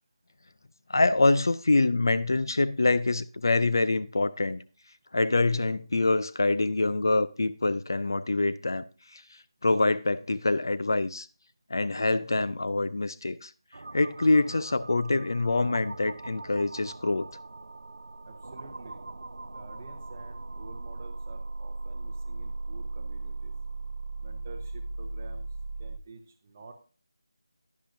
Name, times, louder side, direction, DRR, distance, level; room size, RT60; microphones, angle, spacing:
voice 1, 0.9-4.6 5.1-8.8 9.1-9.2 9.6-11.3 11.7-13.5 13.9-17.3, left 2 dB, 50° left, 0.4 m, -25 dB
sound 1, 13.7-26.0, right 3 dB, 70° right, 0.3 m, -39 dB
voice 2, 18.2-19.0 19.4-23.5 24.2-25.5 25.8-26.7, right 3 dB, 15° right, 0.8 m, -49 dB
11.0 x 10.5 x 2.6 m
figure-of-eight pair, 175°, 3 cm